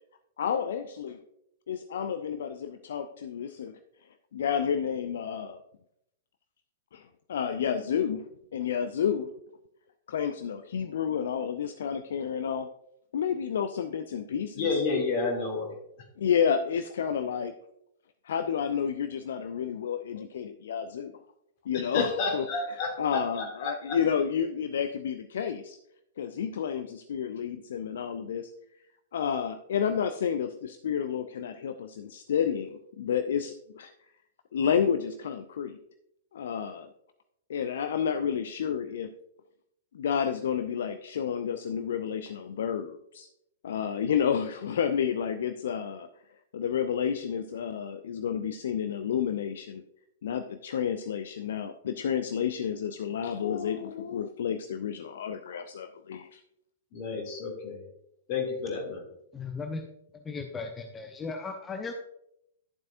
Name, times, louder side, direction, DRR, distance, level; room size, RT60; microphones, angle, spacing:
voice 1, 0.4-1.2 1.7-3.8 4.3-5.6 6.9-8.2 8.5-9.3 10.1-12.7 13.1-14.8 16.2-17.5 18.2-21.2 21.6-25.8 26.2-28.5 29.1-33.9 34.5-35.8 36.3-36.9 37.5-39.1 39.9-43.3 43.6-46.1 46.5-49.8 50.2-56.4, left 7 dB, 60° left, 10 dB, 0.4 m, -30 dB
voice 2, 14.5-15.7 21.9-23.2 23.6-24.0 56.9-57.8 58.3-59.0, left 4 dB, 45° left, 1 dB, 2.6 m, -30 dB
voice 3, 59.3-59.9 60.1-61.9, left 4 dB, 15° left, 4 dB, 0.7 m, -36 dB
11.5 x 7.5 x 2.6 m, 0.78 s
figure-of-eight pair, 105°, 0 cm